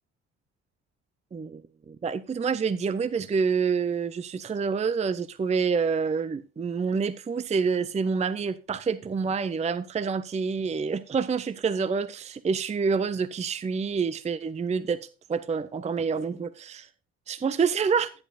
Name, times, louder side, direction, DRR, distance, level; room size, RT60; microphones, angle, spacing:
voice 1, 1.9-16.9 17.3-18.1, right 5 dB, 20° right, 0.6 m, -27 dB
12.5 x 10.0 x 2.5 m
figure-of-eight pair, 45°, 35 cm